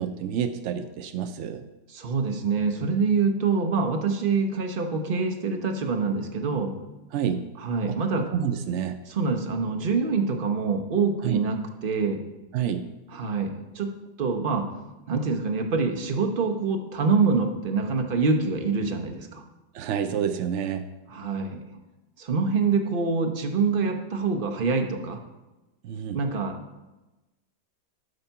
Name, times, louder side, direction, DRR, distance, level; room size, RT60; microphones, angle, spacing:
voice 1, 0.0-1.7 7.1-7.5 7.9-8.0 8.3-9.0 11.2-11.4 12.5-12.9 19.7-20.9 25.8-26.2, right 8 dB, 85° right, 9 dB, 0.6 m, -28 dB
voice 2, 1.9-6.7 7.6-8.3 9.1-12.2 13.1-14.7 15.1-19.4 21.1-21.6 22.2-25.2 26.1-26.8, right 4 dB, 40° right, 4 dB, 0.9 m, -25 dB
8.1 x 5.7 x 5.7 m, 1.1 s
omnidirectional pair, 1.8 m